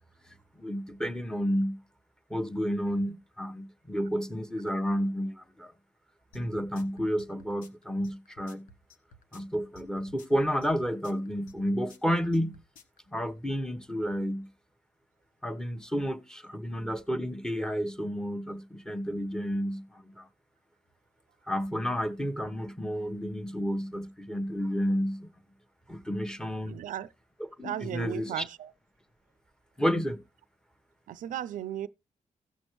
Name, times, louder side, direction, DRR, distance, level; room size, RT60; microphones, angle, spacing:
voice 1, 0.3-1.8 2.3-5.7 6.3-8.7 9.3-12.6 13.1-14.5 15.4-20.3 21.5-25.3 25.9-26.8 27.6-28.4 29.8-30.2, equal, 5° left, 1.0 m, -31 dB
sound 1, 6.3-13.0, left 2 dB, 85° left, 1.1 m, -54 dB
voice 2, 26.6-27.1 27.6-28.7 31.1-31.9, right 11 dB, 90° right, 0.4 m, -36 dB
16.5 x 6.2 x 3.0 m
cardioid pair, 90°, 13 cm